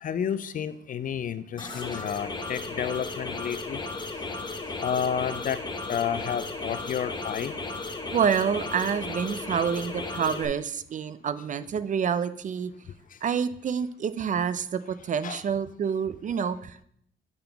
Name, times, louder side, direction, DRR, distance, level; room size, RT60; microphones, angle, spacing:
voice 1, 0.0-3.8 4.8-5.6 5.9-7.5 15.2-15.4, left 8 dB, 45° left, 0.4 m, -30 dB
sound 1, 1.6-10.5, left 3 dB, 20° left, 0.9 m, -35 dB
voice 2, 8.1-12.7 13.2-16.8, right 7 dB, 40° right, 0.4 m, -28 dB
8.6 x 3.9 x 3.4 m
cardioid pair, 90°, 20 cm